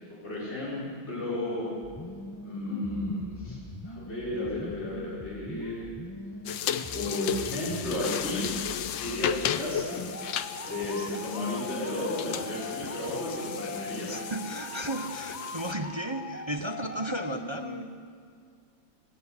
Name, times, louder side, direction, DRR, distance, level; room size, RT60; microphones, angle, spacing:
voice 1, 0.2-1.7 2.4-3.6 3.8-5.8 6.9-8.5 9.0-10.0 10.6-14.1, left 1 dB, 35° left, -7 dB, 6.3 m, -33 dB
sound 1, 1.8-17.8, left 2 dB, 15° left, 0.8 m, -41 dB
sound 2, 6.5-15.7, left 9 dB, 80° left, 1.5 m, -35 dB
voice 2, 14.1-18.0, right 1 dB, 25° right, 6 dB, 0.6 m, -34 dB
22.0 x 19.5 x 8.2 m, 2.1 s
omnidirectional pair, 2.1 m